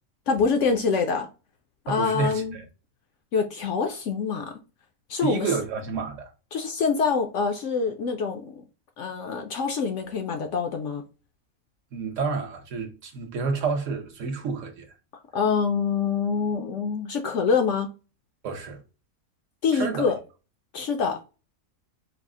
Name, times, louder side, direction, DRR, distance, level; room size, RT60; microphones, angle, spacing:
voice 1, 0.3-1.3 1.9-2.6 3.3-4.6 5.1-5.5 6.5-8.6 9.0-11.0 15.3-17.9 19.6-20.2 20.7-21.2, left 5 dB, 65° left, 0.8 m, -25 dB
voice 2, 1.9-2.6 5.2-6.3 11.9-14.9 18.4-18.8 19.7-20.1, right 5 dB, 60° right, 1.1 m, -29 dB
4.7 x 2.0 x 3.6 m
omnidirectional pair, 1.6 m